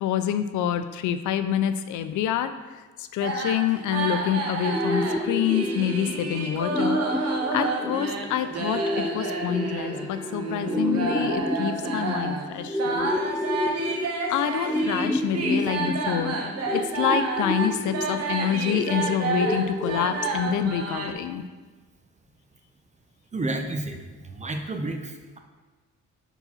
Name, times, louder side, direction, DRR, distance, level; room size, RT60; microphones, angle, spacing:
voice 1, 0.0-13.3 14.3-16.4 16.7-21.5, left 10 dB, 80° left, 10 dB, 0.5 m, -27 dB
sound 1, 3.2-21.1, right 3 dB, 55° right, 1.0 m, -30 dB
sound 2, 4.7-20.7, left 1 dB, 5° left, 0.3 m, -30 dB
voice 2, 23.3-25.4, right 2 dB, 25° right, 4 dB, 0.8 m, -31 dB
4.6 x 3.9 x 5.6 m, 1.3 s
cardioid pair, 90°, 30 cm